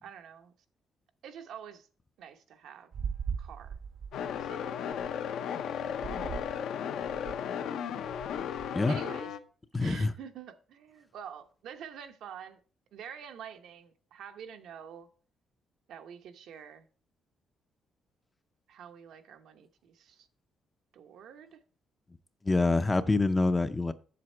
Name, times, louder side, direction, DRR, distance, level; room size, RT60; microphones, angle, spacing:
voice 1, 0.0-0.5 1.2-1.9 2.2-2.9 3.4-3.8 4.4-4.7 5.8-6.4 7.9-8.1 8.5-9.3 9.8-12.6 12.9-15.1 15.9-16.9 18.7-20.3 20.9-21.6, right 8 dB, 75° right, 0.9 m, -47 dB
sound 1, 2.9-5.1 5.9-6.6 7.0-7.5 8.0-8.7, right 7 dB, 50° right, 0.3 m, -39 dB
sound 2, 4.1-9.4, left 8 dB, 75° left, 0.7 m, -35 dB
voice 2, 9.7-10.1 22.4-23.9, left 3 dB, 15° left, 0.4 m, -26 dB
7.7 x 7.1 x 4.3 m
cardioid pair, 145°, 0 cm